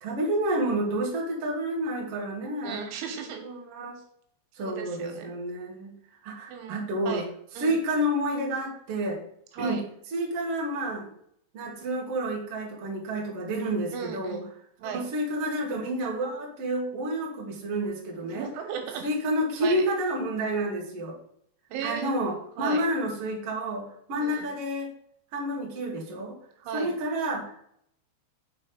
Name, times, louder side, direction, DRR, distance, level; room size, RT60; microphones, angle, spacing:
voice 1, 0.0-2.9 3.4-4.0 4.5-5.9 6.2-7.2 7.5-9.2 9.6-9.8 10.1-11.1 11.5-14.4 14.8-18.5 19.0-21.2 21.8-24.9 25.3-26.4 26.7-27.6, right 1 dB, 60° right, -1 dB, 1.5 m, -29 dB
voice 2, 2.6-3.4 4.6-5.3 6.5-7.2 7.6-7.8 9.5-9.8 13.9-14.5 14.8-15.0 18.3-19.0 19.6-19.9 21.7-22.1 22.6-22.8 24.2-24.5 26.6-26.9, right 7 dB, 90° right, 4 dB, 3.6 m, -36 dB
6.5 x 4.8 x 5.1 m, 0.68 s
omnidirectional pair, 5.3 m